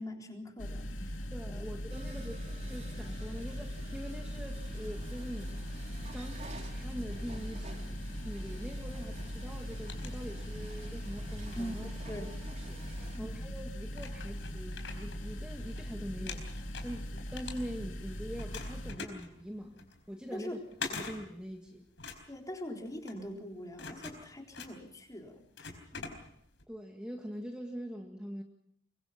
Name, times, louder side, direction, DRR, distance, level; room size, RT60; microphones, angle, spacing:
voice 1, 0.0-1.2 1.5-1.7 11.6-12.3 13.1-13.3 20.3-20.6 22.3-25.4 25.9-26.1, equal, 20° left, 1 dB, 3.8 m, -42 dB
sound 1, 0.6-18.9, equal, 90° left, 3.1 m, -40 dB
voice 2, 1.3-5.6 6.1-11.9 12.2-20.6 20.9-21.9 26.7-28.4, equal, 5° right, 1 dB, 1.8 m, -44 dB
sound 2, 1.9-13.2, right 1 dB, 40° right, 3.8 m, -50 dB
sound 3, 9.5-10.8 11.3-13.0 13.5-13.6 13.9-15.8 16.1-18.0 18.4-26.6, left 4 dB, 70° left, 4.4 m, -45 dB
24.5 x 22.5 x 5.8 m, 0.70 s
head